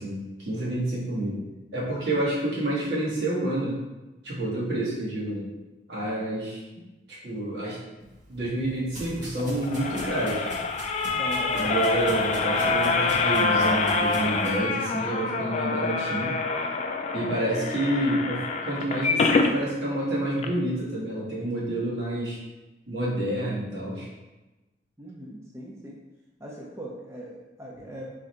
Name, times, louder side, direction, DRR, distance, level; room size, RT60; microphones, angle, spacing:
voice 1, 0.0-1.4 1.7-3.8 4.2-5.5 5.9-6.6 7.1-7.8 8.3-10.5 11.5-16.4 17.1-22.4 22.9-24.1, right 1 dB, 70° right, -6 dB, 1.5 m, -28 dB
sound 1, 8.0-14.6, right 1 dB, 45° right, 1.4 m, -42 dB
sound 2, 9.4-19.5 20.0-20.1 20.4-20.5, left 3 dB, 40° left, 0.3 m, -26 dB
voice 2, 11.2-11.8 25.0-26.0 26.4-28.1, right 1 dB, 15° right, -4 dB, 0.5 m, -40 dB
3.7 x 3.2 x 4.3 m, 1.1 s
head